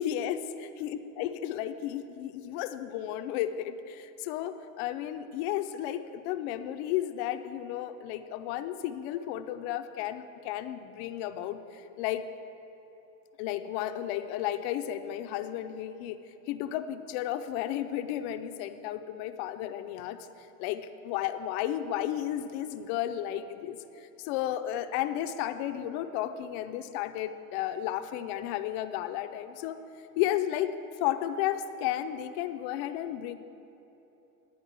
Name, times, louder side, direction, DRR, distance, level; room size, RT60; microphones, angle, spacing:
voice 1, 0.0-12.3 13.4-16.2 16.5-29.8 30.2-30.7 31.0-33.4, left 11 dB, 45° left, 10 dB, 0.5 m, -33 dB
11.0 x 5.1 x 8.1 m, 3.0 s
supercardioid pair, 125°, 46 cm